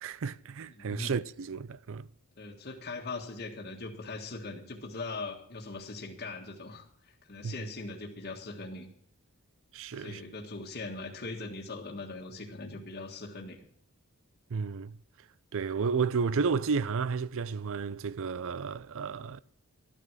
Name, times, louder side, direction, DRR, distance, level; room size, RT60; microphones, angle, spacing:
voice 1, 0.0-2.1 7.4-7.5 9.7-10.2 14.5-15.0 15.5-19.4, right 5 dB, 65° right, 0.5 m, -32 dB
voice 2, 0.7-1.2 2.4-8.9 9.9-13.6, left 3 dB, 45° left, 1.6 m, -40 dB
12.5 x 9.8 x 6.1 m
head